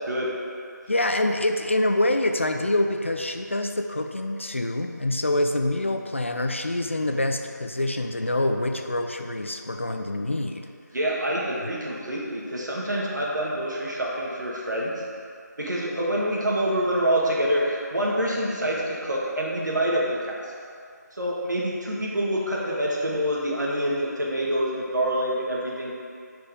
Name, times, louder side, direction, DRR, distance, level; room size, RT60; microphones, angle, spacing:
voice 1, 0.9-10.7, left 1 dB, 40° left, 5 dB, 0.4 m, -26 dB
voice 2, 10.9-15.0 15.6-20.3 21.2-25.9, equal, 70° right, -4 dB, 1.6 m, -26 dB
5.2 x 4.4 x 5.0 m, 2.3 s
figure-of-eight pair, 175°, 10 cm